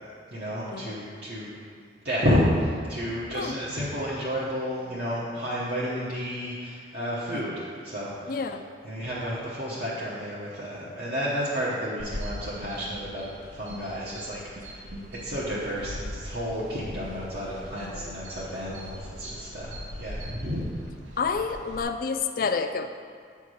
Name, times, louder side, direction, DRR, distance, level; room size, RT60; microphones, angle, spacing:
voice 1, 0.3-1.5 2.0-8.6 8.8-14.8 15.2-20.6, equal, 60° right, -9 dB, 1.1 m, -31 dB
voice 2, 8.3-8.6 17.8-18.1 21.2-22.9, left 5 dB, 50° left, 8 dB, 0.4 m, -29 dB
sound 1, 12.0-21.8, equal, 90° right, 1.0 m, -40 dB
8.4 x 3.5 x 6.3 m, 2.1 s
head